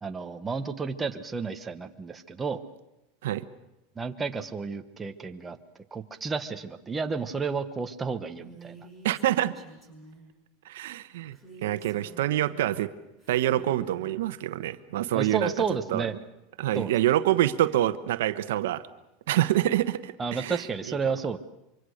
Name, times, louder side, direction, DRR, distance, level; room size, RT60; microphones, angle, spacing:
voice 1, 0.0-2.6 4.0-5.6 5.9-8.8 15.1-16.1 16.7-16.9 20.2-21.4, right 5 dB, 15° right, 6 dB, 1.1 m, -31 dB
Female speech woman speaking, 8.4-10.3 11.3-12.7 13.2-14.1, right 3 dB, 5° left, 6.1 m, -49 dB
voice 2, 9.0-9.5 10.6-12.9 13.3-15.5 15.9-16.1 16.6-18.8 19.3-21.0, right 13 dB, 85° right, 12 dB, 1.0 m, -26 dB
25.0 x 24.0 x 6.5 m, 0.92 s
supercardioid pair, 145°, 0 cm